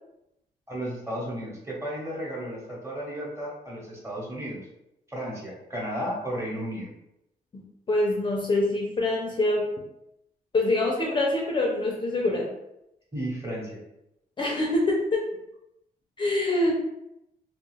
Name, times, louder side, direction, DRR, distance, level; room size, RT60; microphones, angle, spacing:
voice 1, 0.7-4.6 5.1-6.9 13.1-13.8, equal, 15° right, -4 dB, 1.0 m, -33 dB
voice 2, 7.5-9.7 10.5-12.5 14.4-15.2 16.2-16.7, left 2 dB, 30° left, -2 dB, 0.4 m, -25 dB
2.4 x 2.2 x 3.2 m, 0.85 s
cardioid pair, 110°, 16 cm